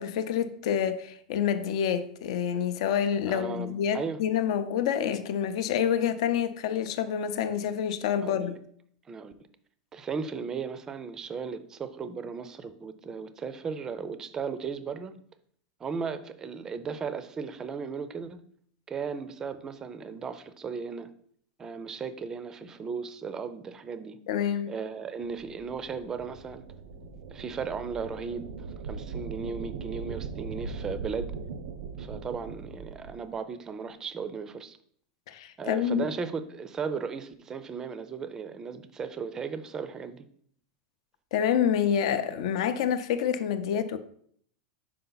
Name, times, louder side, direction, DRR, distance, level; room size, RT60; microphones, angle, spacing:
voice 1, 0.0-8.6 24.3-24.7 35.3-36.1 41.3-44.0, left 8 dB, 65° left, 0.6 m, -27 dB
voice 2, 3.3-4.2 8.2-8.5 9.1-9.3 9.9-15.1 15.8-18.4 18.9-21.1 21.6-24.2 24.7-26.6 27.3-28.5 28.8-31.3 32.0-34.8 35.6-40.2, right 5 dB, 15° right, 0.4 m, -36 dB
sound 1, 25.2-33.3, right 5 dB, 80° right, 0.6 m, -40 dB
5.6 x 4.8 x 4.0 m
supercardioid pair, 155°, 3 cm